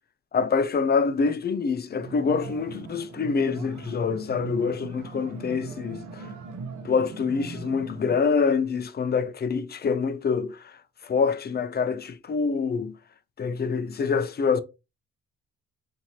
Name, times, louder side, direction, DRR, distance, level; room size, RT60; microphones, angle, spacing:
voice 1, 0.3-6.3 6.8-12.9 13.4-14.6, left 5 dB, 35° left, 0.5 m, -26 dB
sound 1, 2.0-8.2, right 4 dB, 75° right, 0.9 m, -39 dB
4.4 x 2.8 x 2.8 m
cardioid pair, 90°, 30 cm